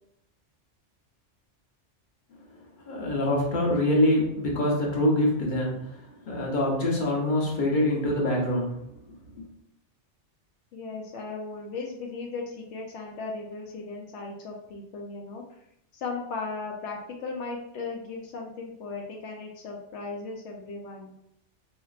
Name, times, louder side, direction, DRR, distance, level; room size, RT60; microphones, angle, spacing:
voice 1, 2.9-8.7 9.4-9.5, left 1 dB, 45° left, -2 dB, 1.1 m, -25 dB
voice 2, 10.7-15.4 15.9-21.1, left 4 dB, 80° left, 0 dB, 0.9 m, -37 dB
4.3 x 3.0 x 2.4 m, 0.77 s
omnidirectional pair, 1.2 m